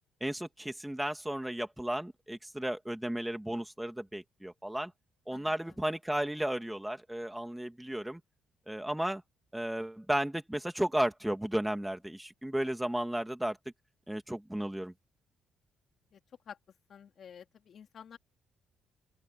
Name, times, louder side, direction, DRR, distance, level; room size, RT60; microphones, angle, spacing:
voice 1, 0.2-4.9 5.3-8.2 8.7-9.2 9.5-13.6 14.1-14.9, right 1 dB, 5° right, 2.4 m, -34 dB
voice 2, 5.3-5.8 16.1-16.2 16.5-16.6 16.9-18.2, left 8 dB, 60° left, 3.4 m, -51 dB
open air
cardioid pair, 90°, 0 cm